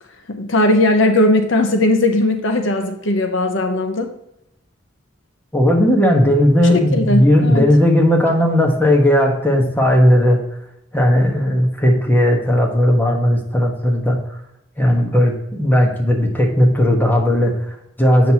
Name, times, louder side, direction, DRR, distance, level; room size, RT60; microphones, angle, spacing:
voice 1, 0.3-4.1 6.7-7.7, left 1 dB, 70° left, 5 dB, 0.9 m, -17 dB
voice 2, 5.5-10.4 10.9-14.2 14.8-18.3, equal, 10° left, -1 dB, 1.3 m, -15 dB
7.7 x 6.2 x 2.9 m, 0.80 s
head